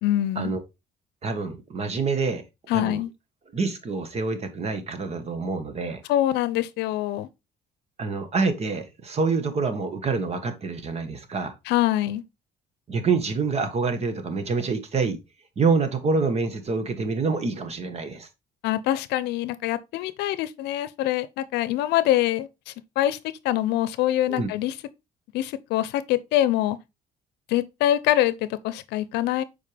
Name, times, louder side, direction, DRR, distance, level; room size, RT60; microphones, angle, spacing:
voice 1, 0.0-0.5 2.7-3.1 6.1-7.3 11.7-12.2 18.6-23.2 23.4-24.7 25.3-26.8 27.5-29.4, left 13 dB, 85° left, 0.6 m, -24 dB
voice 2, 1.2-2.4 2.7-3.0 3.5-6.0 8.0-11.5 12.9-15.2 15.6-18.3 24.3-24.5, right 4 dB, 40° right, 1.5 m, -26 dB
7.5 x 4.7 x 3.3 m
cardioid pair, 110°, 17 cm